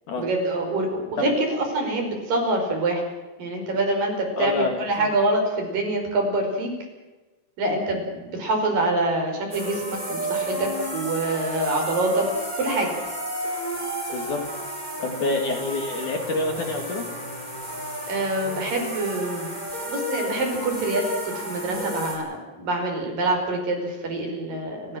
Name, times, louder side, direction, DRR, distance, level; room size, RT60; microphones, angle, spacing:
voice 1, 0.2-3.0 3.4-6.7 7.6-12.3 12.6-12.9 18.1-19.5 19.9-25.0, right 2 dB, 50° right, 2 dB, 6.7 m, -25 dB
voice 2, 4.4-5.1 14.1-14.4 15.0-17.1, left 3 dB, 50° left, 4 dB, 3.2 m, -27 dB
sound 1, 9.5-22.2, right 1 dB, 10° right, 6.4 m, -32 dB
29.5 x 15.5 x 7.7 m, 1.2 s
omnidirectional pair, 5.0 m